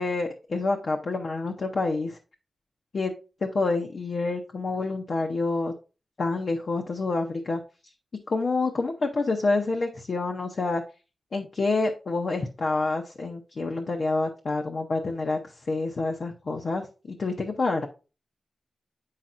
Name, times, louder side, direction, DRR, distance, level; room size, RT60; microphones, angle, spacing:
voice 1, 0.0-2.2 2.9-3.1 3.4-5.7 6.2-7.6 8.3-10.8 11.3-15.4 15.7-17.9, left 3 dB, 50° left, 2 dB, 0.7 m, -27 dB
8.4 x 5.7 x 2.5 m, 0.33 s
wide cardioid pair, 150°, 0 cm